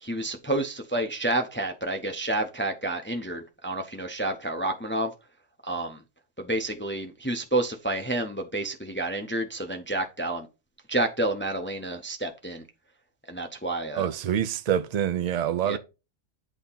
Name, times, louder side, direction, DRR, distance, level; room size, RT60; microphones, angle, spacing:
voice 1, 0.0-5.1 5.6-6.0 6.4-10.5 10.9-12.6 13.3-14.1 15.7-15.8, right 2 dB, 15° left, 0.5 m, -29 dB
voice 2, 14.0-15.8, right 9 dB, 60° right, 0.4 m, -26 dB
8.4 x 2.8 x 5.4 m
omnidirectional pair, 1.3 m